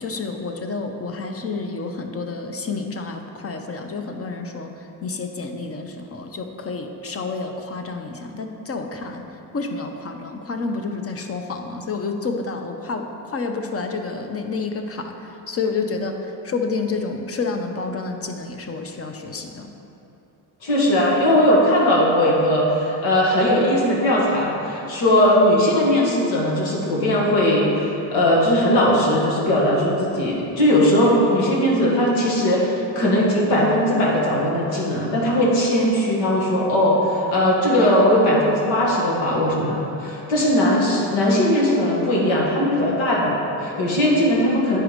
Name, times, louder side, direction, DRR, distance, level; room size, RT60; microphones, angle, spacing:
voice 1, 0.0-9.2 9.5-19.7, left 4 dB, 30° left, 5 dB, 0.7 m, -29 dB
voice 2, 20.6-44.8, left 1 dB, 85° left, -4 dB, 1.9 m, -19 dB
9.9 x 4.7 x 5.1 m, 2.9 s
cardioid pair, 105°, 45 cm